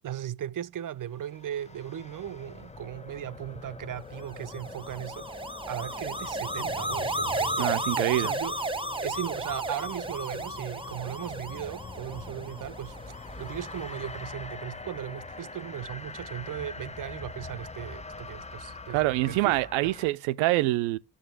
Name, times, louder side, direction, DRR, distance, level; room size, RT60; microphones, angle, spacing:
voice 1, 0.0-7.7 8.1-13.0 13.4-19.9, right 10 dB, 40° right, 0.7 m, -37 dB
sound 1, 1.1-20.1, left 3 dB, 15° left, 0.8 m, -43 dB
sound 2, 4.3-13.6, right 1 dB, 10° right, 1.0 m, -34 dB
voice 2, 7.6-8.3 18.9-21.0, right 18 dB, 80° right, 0.7 m, -25 dB
11.5 x 6.8 x 9.4 m
hypercardioid pair, 40°, 48 cm